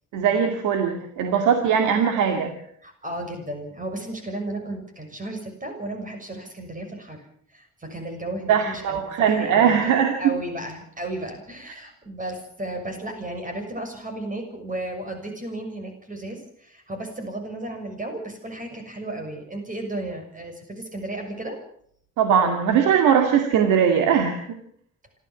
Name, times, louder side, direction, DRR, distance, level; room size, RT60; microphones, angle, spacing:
voice 1, 0.1-2.5 8.5-10.3 22.2-24.4, right 7 dB, 90° right, 5 dB, 2.3 m, -20 dB
voice 2, 2.8-9.8 10.2-21.6, right 1 dB, 25° right, 4 dB, 6.6 m, -34 dB
27.0 x 13.5 x 7.4 m, 0.65 s
cardioid pair, 90°, 30 cm